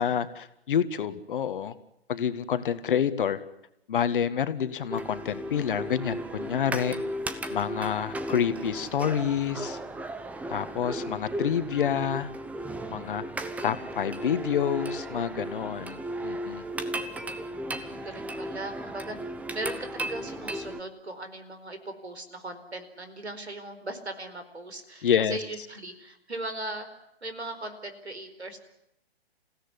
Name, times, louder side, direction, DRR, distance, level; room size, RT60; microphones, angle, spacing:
voice 1, 0.0-1.7 2.1-3.4 3.9-7.0 7.5-9.8 10.5-12.3 12.9-13.2 13.6-16.7 25.0-25.4, left 8 dB, 50° left, 11 dB, 1.8 m, -28 dB
sound 1, 4.9-20.8, right 1 dB, 5° right, 0.9 m, -35 dB
voice 2, 7.5-8.1 17.5-19.2 19.5-26.9 27.2-28.6, right 2 dB, 85° right, 9 dB, 4.7 m, -39 dB
28.0 x 16.5 x 9.9 m, 0.83 s
figure-of-eight pair, 130°, 32 cm